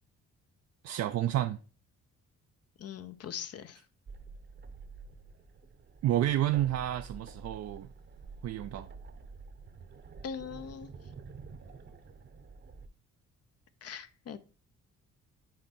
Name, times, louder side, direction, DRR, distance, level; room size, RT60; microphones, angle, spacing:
voice 1, 0.8-1.6 6.0-7.9 8.4-8.9, right 12 dB, 60° right, 0.5 m, -30 dB
voice 2, 2.8-3.8 10.2-10.9 13.8-14.4, left 7 dB, 55° left, 0.7 m, -41 dB
sound 1, 4.1-12.9, right 4 dB, 40° right, 0.8 m, -49 dB
6.4 x 4.5 x 4.2 m
cardioid pair, 90°, 30 cm